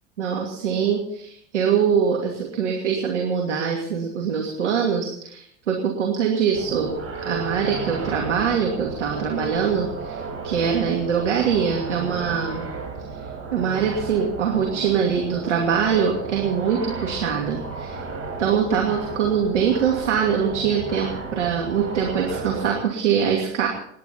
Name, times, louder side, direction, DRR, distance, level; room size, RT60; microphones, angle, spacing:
voice 1, 0.2-6.9 7.2-12.7 13.5-18.0 18.4-23.7, right 7 dB, 85° right, 0 dB, 2.7 m, -23 dB
sound 1, 6.5-22.7, right 4 dB, 40° right, 5.0 m, -33 dB
29.5 x 10.5 x 4.3 m, 0.72 s
hypercardioid pair, 75°, 35 cm